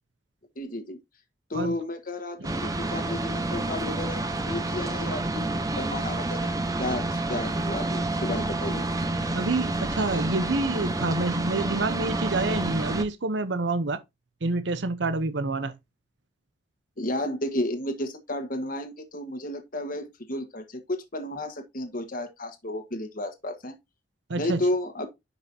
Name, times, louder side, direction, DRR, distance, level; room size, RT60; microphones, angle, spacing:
voice 1, 0.6-1.0 1.5-5.5 5.8-6.5 6.8-8.8 17.0-23.7 24.4-25.1, left 1 dB, 50° left, 1.5 m, -32 dB
sound 1, 2.4-13.0, right 2 dB, 20° right, 1.1 m, -29 dB
voice 2, 9.3-14.0 14.4-15.7 24.3-24.6, right 2 dB, 75° right, 0.8 m, -27 dB
10.5 x 5.5 x 2.8 m
head